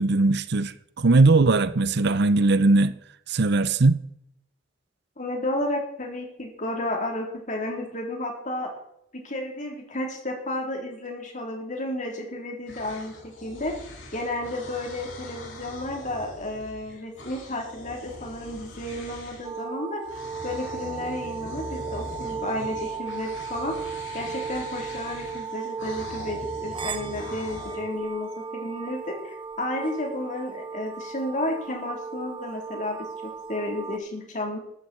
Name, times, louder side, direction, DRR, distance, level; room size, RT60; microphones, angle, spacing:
voice 1, 0.0-3.0 3.3-4.0, right 3 dB, 60° right, 0.7 m, -20 dB
voice 2, 5.2-8.7 9.1-13.8 14.1-20.0 20.4-23.8 24.1-34.6, left 1 dB, 40° left, 3.8 m, -32 dB
sound 1, 12.7-19.6 20.0-27.8, left 1 dB, 85° left, 6.0 m, -42 dB
sound 2, 19.4-34.0, right 5 dB, 25° right, 0.8 m, -36 dB
14.0 x 14.0 x 4.5 m
head